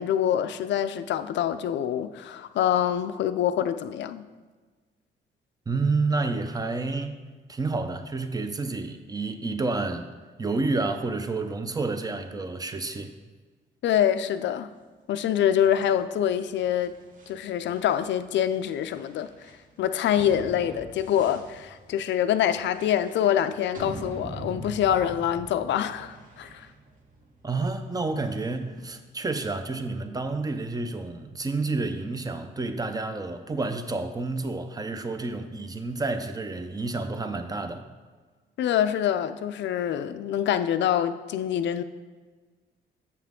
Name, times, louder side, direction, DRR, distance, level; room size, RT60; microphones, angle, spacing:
voice 1, 0.0-4.2 13.8-14.7 15.1-17.0 17.3-19.3 19.8-26.7 38.6-41.8, left 10 dB, 65° left, 0.4 m, -25 dB
voice 2, 5.7-7.2 7.5-10.1 10.4-13.1 27.4-37.9, right 3 dB, 20° right, 0.6 m, -29 dB
sound 1, 15.6-28.9, right 2 dB, 40° right, 1.3 m, -44 dB
7.2 x 5.7 x 3.6 m
cardioid pair, 90°, 20 cm